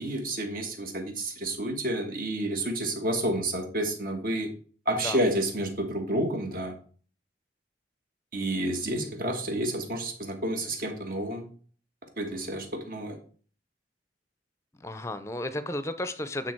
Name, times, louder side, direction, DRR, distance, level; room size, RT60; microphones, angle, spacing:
voice 1, 0.0-4.5 4.8-6.8 8.3-11.5 12.2-13.2, right 1 dB, 55° right, 4 dB, 1.5 m, -30 dB
voice 2, 14.8-16.5, left 1 dB, 15° left, 12 dB, 0.6 m, -33 dB
8.9 x 3.9 x 4.5 m, 0.42 s
head